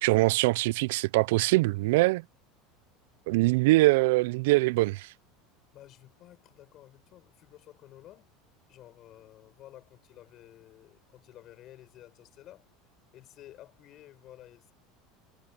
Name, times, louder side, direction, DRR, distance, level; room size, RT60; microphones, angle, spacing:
voice 1, 0.0-2.2 3.3-5.1, right 21 dB, 75° right, 0.4 m, -23 dB
voice 2, 5.7-8.3 8.7-12.7 13.1-14.7, left 13 dB, 50° left, 5.2 m, -52 dB
hypercardioid pair, 90°, 0 cm